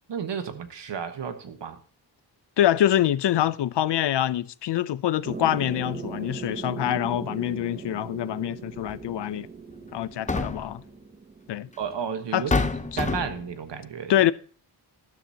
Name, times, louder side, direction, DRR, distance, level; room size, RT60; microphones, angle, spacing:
voice 1, 0.1-1.8 11.8-12.7 12.9-14.1, right 6 dB, 75° right, 1.3 m, -32 dB
voice 2, 2.6-9.5 9.9-10.8 11.5-11.7 12.3-12.4 14.1-14.3, left 12 dB, 75° left, 0.6 m, -25 dB
sound 1, 5.2-12.4, right 5 dB, 20° right, 0.8 m, -39 dB
sound 2, 8.9-9.0 10.0-10.8 11.8-11.9 12.5-13.5, left 3 dB, 15° left, 0.6 m, -27 dB
12.5 x 12.0 x 2.8 m
wide cardioid pair, 90°, 43 cm